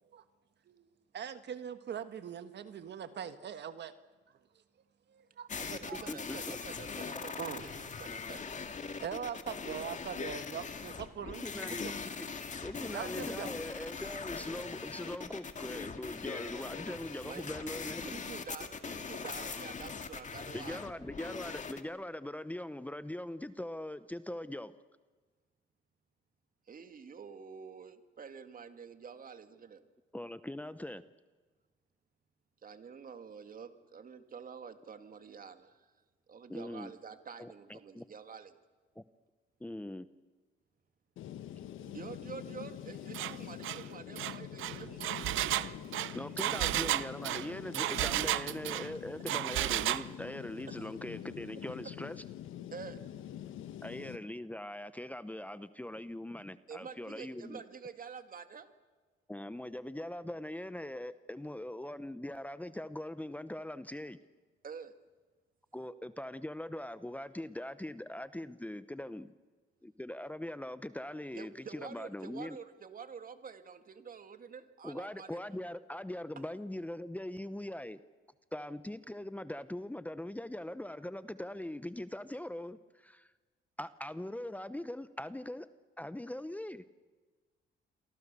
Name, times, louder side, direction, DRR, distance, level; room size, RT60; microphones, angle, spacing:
voice 1, 1.1-3.9 5.1-5.5 5.9-6.0 7.4-7.7 8.8-11.9 12.9-13.5, right 8 dB, 60° right, 11 dB, 1.4 m, -42 dB
sound 1, 5.5-21.8, left 5 dB, 40° left, 2.1 m, -41 dB
voice 2, 5.6-8.4 17.2-17.7 18.0-20.8 26.7-29.8 32.6-35.8 36.3-38.5 41.8-46.6 50.7-50.9 52.7-53.0 56.7-58.7 64.6-64.9 71.4-75.4, right 6 dB, 45° right, 9 dB, 2.1 m, -48 dB
voice 3, 6.1-6.6 11.2-11.8 12.2-12.3 12.6-18.0 20.5-24.7 30.1-31.0 36.5-36.9 37.4-38.0 39.0-39.1 39.6-40.1 46.1-52.2 53.8-57.6 59.3-64.2 65.7-69.3 69.8-72.6 74.8-78.0 78.5-83.3 83.8-85.7 86.0-86.8, left 1 dB, 5° left, 13 dB, 0.9 m, -41 dB
sound 2, 41.2-54.2, left 11 dB, 80° left, 1.3 m, -45 dB
Engine, 43.1-43.3 43.6-43.8 44.2-48.9 49.3-50.1, right 14 dB, 85° right, 0.7 m, -33 dB
28.5 x 24.0 x 6.9 m, 1.4 s
cardioid pair, 90°, 20 cm